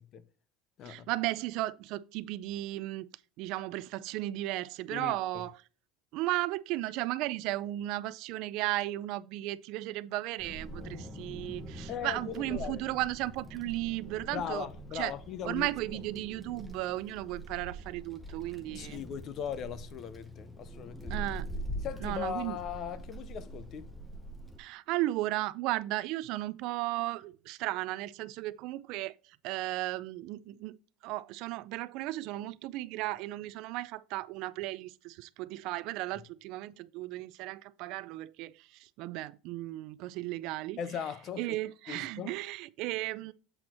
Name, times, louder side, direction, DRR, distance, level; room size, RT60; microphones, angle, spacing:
voice 1, 0.8-3.1 3.4-5.6 6.1-14.7 14.9-15.1 15.4-19.0 21.1-21.5 22.0-22.6 24.6-29.2 29.4-30.8 31.0-40.8 41.4-43.3, right 17 dB, 55° right, 0.4 m, -35 dB
voice 2, 4.9-5.4 11.9-12.8 14.3-15.7 18.7-21.2 21.8-23.9 40.8-41.6 41.9-42.4, left 8 dB, 35° left, 0.6 m, -39 dB
Wind, 10.4-24.6, right 1 dB, 5° left, 0.8 m, -43 dB
7.9 x 4.3 x 4.2 m
cardioid pair, 165°, 0 cm